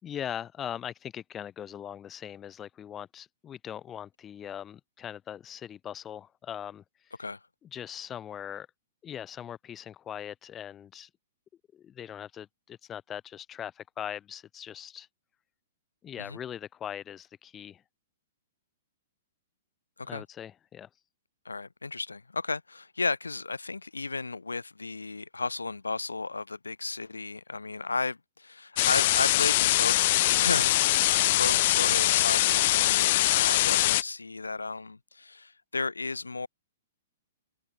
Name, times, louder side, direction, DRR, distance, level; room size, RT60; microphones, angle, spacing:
voice 1, 0.0-6.8 7.7-8.7 9.0-11.1 11.7-15.1 16.0-17.8 20.1-20.9, left 9 dB, 20° left, 2.9 m, -40 dB
voice 2, 21.4-30.8 31.4-36.5, left 3 dB, 80° left, 4.1 m, -34 dB
sound 1, 28.8-34.0, left 17 dB, 45° left, 1.4 m, -23 dB
open air
figure-of-eight pair, 110°, 0 cm